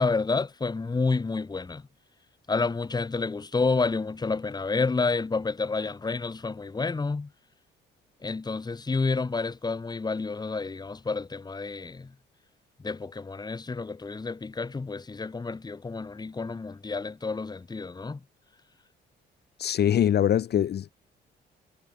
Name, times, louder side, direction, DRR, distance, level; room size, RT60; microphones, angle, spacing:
voice 1, 0.0-1.8 2.5-7.3 8.2-12.1 12.8-18.2, left 4 dB, 20° left, 1.1 m, -29 dB
voice 2, 19.6-20.9, left 10 dB, 55° left, 0.8 m, -23 dB
cardioid pair, 90°, 20 cm